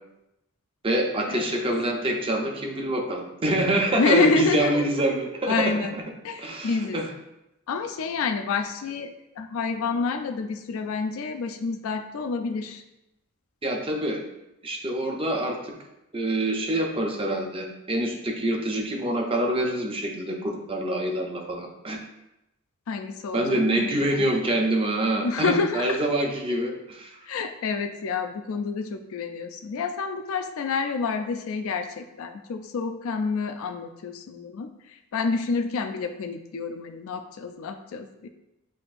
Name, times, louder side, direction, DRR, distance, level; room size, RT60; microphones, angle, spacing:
voice 1, 0.8-5.7 6.4-7.1 13.6-14.2 14.6-15.7 16.1-22.0 23.3-27.2, right 1 dB, 25° right, 2 dB, 0.6 m, -26 dB
voice 2, 4.0-4.8 5.5-5.9 6.2-7.0 7.7-9.1 9.4-12.8 22.9-24.3 25.2-26.0 27.3-38.3, left 4 dB, 70° left, 6 dB, 0.4 m, -28 dB
7.6 x 2.6 x 2.5 m, 0.90 s
head